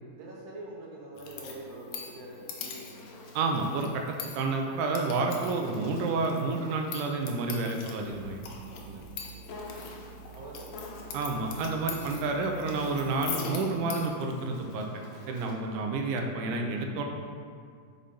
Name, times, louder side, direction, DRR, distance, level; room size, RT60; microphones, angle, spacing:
voice 1, 0.0-3.1 9.2-10.9, right 1 dB, 65° right, -3 dB, 1.9 m, -46 dB
sound 1, 1.2-14.1, left 5 dB, 75° left, 1.9 m, -43 dB
Insect, 2.4-4.6 5.6-7.7 9.5-10.3 10.7-11.9 12.5-15.7, left 3 dB, 90° left, 2.4 m, -50 dB
voice 2, 3.4-8.4 8.8-9.0 11.1-14.9 15.3-17.0, right 3 dB, 85° right, 2 dB, 2.1 m, -30 dB
sound 2, 8.0-13.3, right 7 dB, 55° left, 2.1 m, -50 dB
5.8 x 4.9 x 5.3 m, 2.1 s
omnidirectional pair, 3.6 m